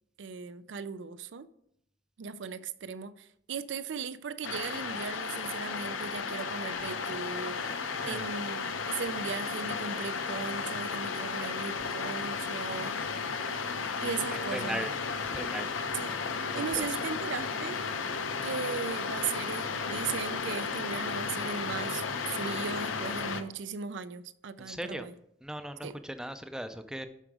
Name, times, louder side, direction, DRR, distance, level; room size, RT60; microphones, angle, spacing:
voice 1, 0.2-1.5 2.2-7.7 8.1-13.0 14.0-14.8 15.9-16.2 16.5-17.8 18.4-25.1 25.8-26.0, right 6 dB, 70° right, 0.4 m, -37 dB
sound 1, 4.4-23.4, left 5 dB, 90° left, 0.8 m, -34 dB
voice 2, 14.3-14.9 15.3-15.7 16.5-16.8 24.6-25.1 25.4-27.1, equal, 5° right, 0.5 m, -38 dB
12.0 x 5.0 x 4.9 m
head